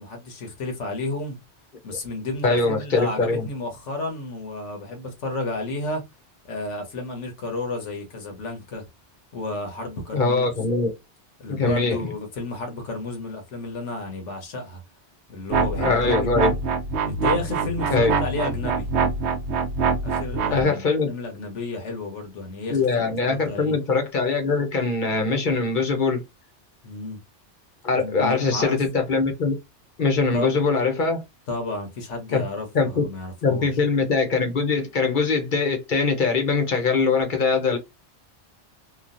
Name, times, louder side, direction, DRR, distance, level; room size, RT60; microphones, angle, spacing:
voice 1, 0.0-1.4 1.8-6.0 6.5-8.9 9.3-10.4 11.4-14.8 15.3-16.3 17.1-18.9 20.0-23.8 26.8-27.2 28.0-28.8 30.3-30.6 31.5-33.7, left 2 dB, 90° left, 1.3 m, -32 dB
voice 2, 2.4-3.5 10.1-10.9 11.5-12.1 15.8-16.5 17.9-18.1 20.5-21.1 22.7-26.2 27.8-29.5 30.0-31.2 32.3-32.4 32.7-33.0 33.4-37.8, left 4 dB, 50° left, 0.9 m, -22 dB
sound 1, 15.5-20.6, right 5 dB, 75° right, 0.8 m, -24 dB
3.0 x 2.4 x 2.5 m
omnidirectional pair, 1.2 m